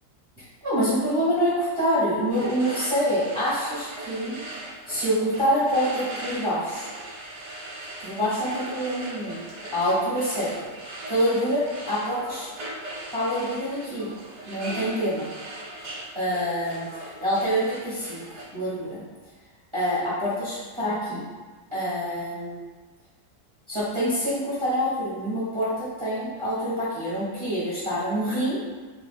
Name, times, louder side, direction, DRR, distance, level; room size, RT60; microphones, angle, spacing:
voice 1, 0.4-4.4 4.9-6.9 8.0-9.4 9.7-10.5 11.1-12.5 13.1-14.1 14.5-15.3 16.1-16.9 17.2-19.0 19.7-21.3 21.7-22.6 23.7-28.6, equal, 25° right, -10 dB, 0.7 m, -26 dB
sound 1, 2.3-18.4, right 1 dB, 80° right, 1.4 m, -39 dB
3.1 x 2.5 x 2.2 m, 1.4 s
omnidirectional pair, 1.7 m